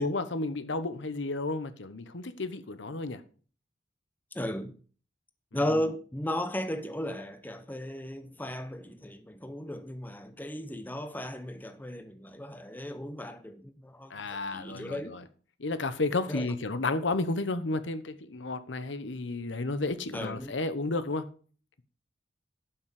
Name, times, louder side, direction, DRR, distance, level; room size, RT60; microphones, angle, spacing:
voice 1, 0.0-3.2 14.1-15.2 15.6-21.3, left 3 dB, 80° left, 1.0 m, -32 dB
voice 2, 4.3-4.7 5.5-15.2 16.3-16.5 20.1-20.5, equal, 10° left, 0.7 m, -35 dB
11.5 x 6.0 x 4.9 m
head